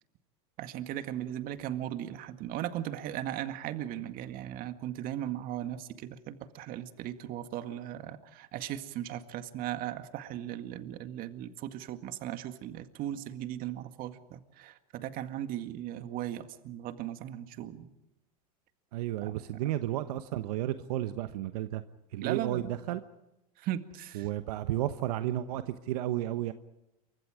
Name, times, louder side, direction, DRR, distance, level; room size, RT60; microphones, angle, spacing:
voice 1, 0.6-17.9 19.2-19.6 22.2-22.7 23.6-24.3, right 12 dB, 45° right, 9 dB, 2.0 m, -37 dB
voice 2, 18.9-21.8 22.1-23.0 24.1-26.5, right 13 dB, 75° right, 10 dB, 1.1 m, -32 dB
28.0 x 24.5 x 5.0 m, 0.91 s
supercardioid pair, 120°, 20 cm